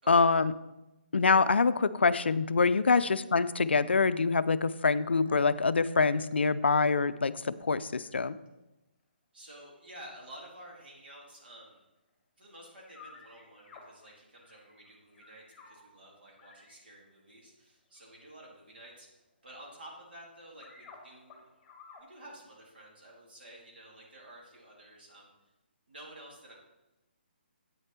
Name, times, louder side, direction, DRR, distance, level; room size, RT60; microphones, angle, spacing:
voice 1, 0.1-0.5 1.1-8.4, left 4 dB, 75° left, 15 dB, 0.4 m, -25 dB
sound 1, 3.2-4.2 4.6-5.4 6.9-7.0 7.2-7.3 7.6-7.7 8.0-8.1 11.0-11.1 12.1-12.2 12.6-15.8 16.4-16.9 17.9-18.2 18.6-20.0 20.4-21.0 21.3-22.0, left 5 dB, 15° left, 1.7 m, -55 dB
voice 2, 9.3-11.8 12.4-21.4 22.0-25.3 25.9-26.5, right 1 dB, 60° right, -3 dB, 3.4 m, -51 dB
8.6 x 6.5 x 4.4 m, 0.99 s
figure-of-eight pair, 145°, 6 cm